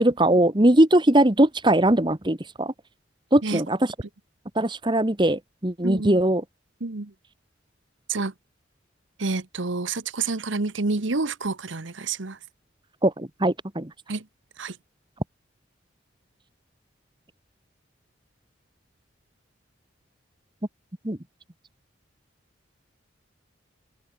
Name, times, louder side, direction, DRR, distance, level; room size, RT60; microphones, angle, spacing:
voice 1, 0.0-2.7 3.3-3.8 4.5-6.4 13.0-13.9 21.0-21.2, right 1 dB, 25° right, 1.4 m, -20 dB
voice 2, 5.8-6.2 6.8-7.1 8.1-8.3 9.2-12.4 14.1-14.3 14.6-14.8, right 3 dB, 80° right, 1.2 m, -28 dB
head